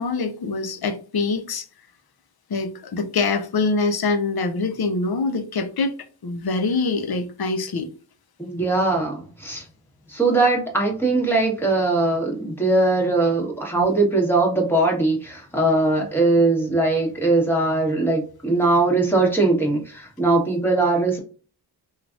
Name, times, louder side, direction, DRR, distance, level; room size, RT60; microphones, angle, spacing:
voice 1, 0.0-1.7 2.5-6.0 6.2-7.9 13.7-13.9, left 3 dB, 60° left, 0.6 m, -24 dB
voice 2, 8.4-9.6 10.1-21.2, right 2 dB, 5° left, 1.4 m, -20 dB
3.2 x 2.4 x 2.5 m
wide cardioid pair, 50°, 43 cm